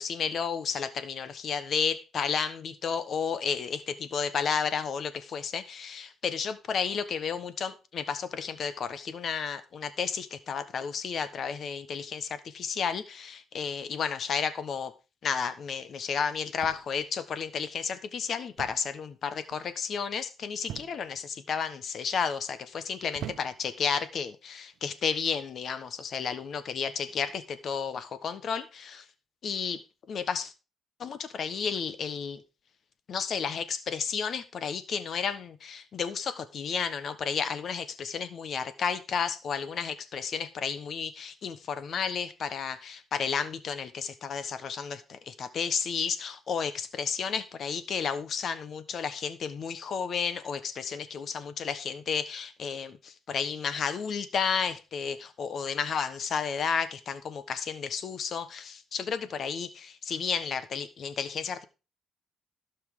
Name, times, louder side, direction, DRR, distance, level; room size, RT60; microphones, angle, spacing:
voice 1, 0.0-14.9 15.2-29.1 29.4-30.5 31.0-32.4 33.1-61.6, left 6 dB, 55° left, 1.2 m, -32 dB
sound 1, 16.6-17.1 18.6-19.0 19.3-19.7 20.7-21.2 21.9-22.3 23.1-23.8 24.7-25.0, right 11 dB, 75° right, 0.9 m, -43 dB
16.0 x 5.6 x 3.7 m
cardioid pair, 110°, 0 cm